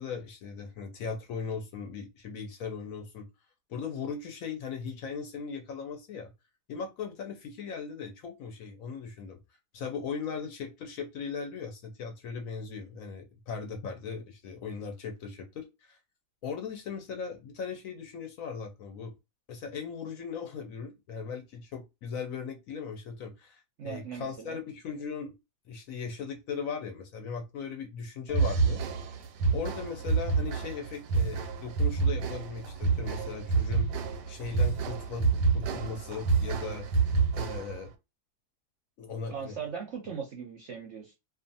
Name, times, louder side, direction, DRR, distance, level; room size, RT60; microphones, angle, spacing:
voice 1, 0.0-3.3 3.7-6.3 6.7-9.4 9.7-16.0 16.4-19.1 19.5-25.3 25.7-28.8 29.5-33.9 34.3-36.9 37.3-37.9 39.0-39.5, left 5 dB, 65° left, 0.9 m, -38 dB
voice 2, 23.8-24.6 39.3-41.1, right 6 dB, 65° right, 0.7 m, -39 dB
sound 1, 28.3-37.9, right 4 dB, 90° right, 1.2 m, -28 dB
2.5 x 2.4 x 2.5 m
omnidirectional pair, 1.8 m